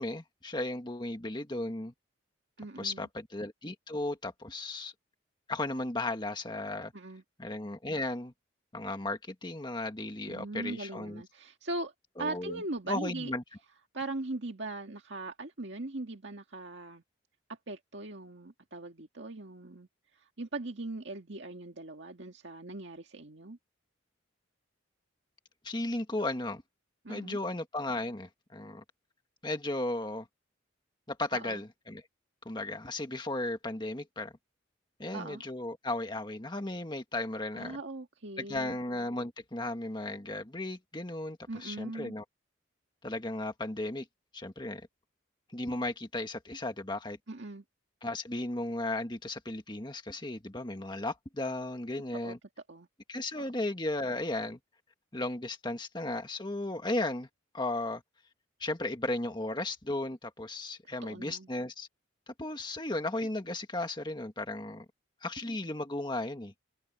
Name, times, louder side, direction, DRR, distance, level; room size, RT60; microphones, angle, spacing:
voice 1, 0.0-1.9 2.8-4.9 5.5-6.9 7.4-8.3 8.7-11.2 12.2-12.6 12.9-13.4 25.6-26.6 27.1-28.8 29.4-30.3 31.1-32.0 32.4-34.3 35.0-37.8 38.4-42.2 43.0-44.0 44.3-44.9 45.5-47.2 48.0-52.4 53.1-54.6 55.1-57.3 57.5-58.0 58.6-61.9 62.3-64.8 65.2-66.5, left 2 dB, 20° left, 1.7 m, -35 dB
voice 2, 2.6-3.1 6.9-7.2 10.3-11.9 12.2-13.3 13.9-17.0 17.5-19.9 20.1-23.6 27.0-27.4 31.3-31.6 35.1-35.4 37.5-38.8 41.5-42.1 47.3-47.6 52.2-52.3 52.7-52.9 61.0-61.5, right 2 dB, 65° right, 2.0 m, -40 dB
head